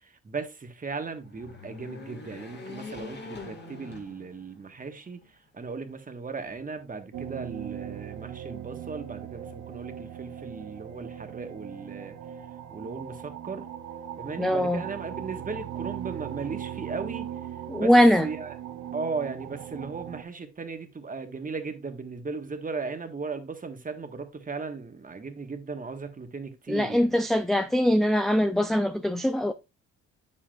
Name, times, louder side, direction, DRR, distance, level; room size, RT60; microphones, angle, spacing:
voice 1, 0.0-12.2 12.7-13.7 14.2-17.3 17.7-17.9 18.2-18.6 18.9-27.2, right 4 dB, 25° right, 1.4 m, -37 dB
sound 1, 1.1-4.7 5.2-5.3 6.4-7.2, left 3 dB, 35° left, 2.0 m, -44 dB
sound 2, 7.1-20.2, right 10 dB, 75° right, 0.9 m, -39 dB
voice 2, 14.4-14.8 17.7-18.3 26.7-29.5, equal, ahead, 0.4 m, -22 dB
8.4 x 7.7 x 2.4 m
cardioid pair, 90°, 30 cm